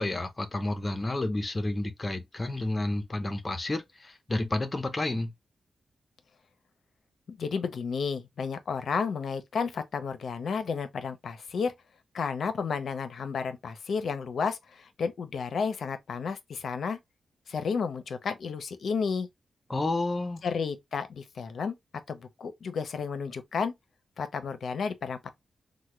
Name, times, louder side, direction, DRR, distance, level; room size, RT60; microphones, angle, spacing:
voice 1, 0.0-5.3 19.7-20.4, left 2 dB, 25° left, 0.6 m, -30 dB
voice 2, 7.3-11.7 12.1-17.0 17.5-19.3 20.4-21.8 22.1-23.7 24.2-25.3, left 5 dB, 65° left, 0.5 m, -32 dB
3.3 x 2.1 x 3.0 m
wide cardioid pair, 140°, 0 cm